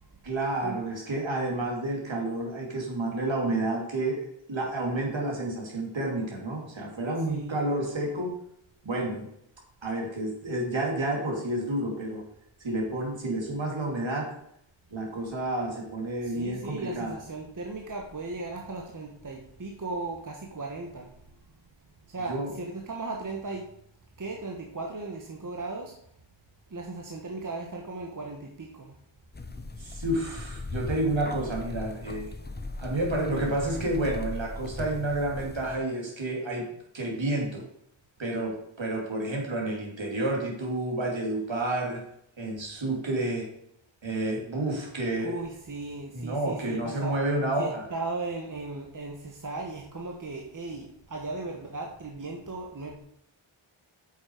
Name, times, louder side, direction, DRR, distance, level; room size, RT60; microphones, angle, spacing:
voice 1, 0.2-8.3 8.8-9.3 9.8-12.2 12.6-14.3 14.9-17.1 22.3-22.5 29.8-32.3 32.8-36.7 36.9-37.6 38.2-42.0 42.4-43.5 44.0-45.4 46.1-47.9, right 1 dB, 65° right, -1 dB, 3.4 m, -30 dB
voice 2, 7.3-7.6 16.2-21.2 22.1-23.7 24.2-26.0 26.7-29.0 45.2-47.2 47.6-53.0, right 3 dB, 40° right, 1 dB, 1.3 m, -37 dB
sound 1, 29.3-35.8, left 2 dB, 20° left, 0.8 m, -38 dB
9.0 x 7.4 x 5.0 m, 0.71 s
wide cardioid pair, 105°, 49 cm